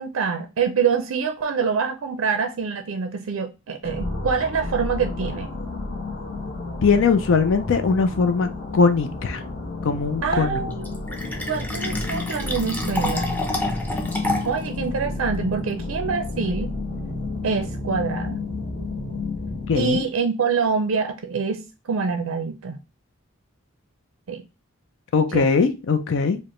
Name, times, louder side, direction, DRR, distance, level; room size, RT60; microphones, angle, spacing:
voice 1, 0.0-5.5 10.2-10.9 11.4-13.3 14.4-16.7 17.4-18.4 19.7-22.8 24.3-24.4 25.3-25.5, right 5 dB, 65° right, 0.4 m, -25 dB
sound 1, 3.8-20.0, left 3 dB, 40° left, 1.1 m, -31 dB
voice 2, 6.8-9.4 9.8-10.6 19.7-20.0 25.1-26.4, left 5 dB, 60° left, 0.4 m, -20 dB
Fill (with liquid), 10.7-14.7, left 1 dB, 10° left, 0.6 m, -28 dB
4.8 x 2.1 x 3.0 m
head